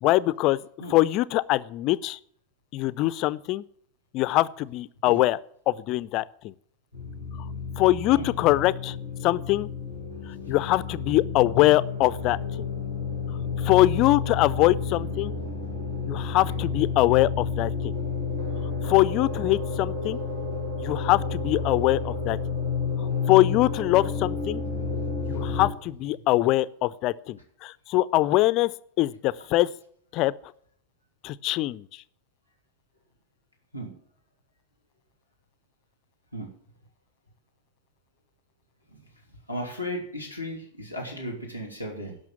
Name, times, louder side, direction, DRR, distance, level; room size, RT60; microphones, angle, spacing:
voice 1, 0.0-0.6 0.9-2.2 2.7-3.6 4.1-5.4 5.7-6.5 7.8-9.0 9.2-9.7 10.3-12.7 13.6-15.3 16.0-17.9 18.8-20.2 20.8-22.4 23.0-24.6 25.3-28.7 29.0-29.7 30.1-30.3 31.2-32.0, left 17 dB, 40° left, 17 dB, 0.5 m, -23 dB
sound 1, 6.9-25.7, left 4 dB, 70° right, 5.6 m, -31 dB
voice 2, 24.8-25.6 33.7-33.9 36.3-36.5 38.9-39.0 39.3-42.2, equal, 90° right, 1 dB, 2.9 m, -36 dB
12.0 x 6.3 x 8.6 m, 0.63 s
figure-of-eight pair, 90°, 0 cm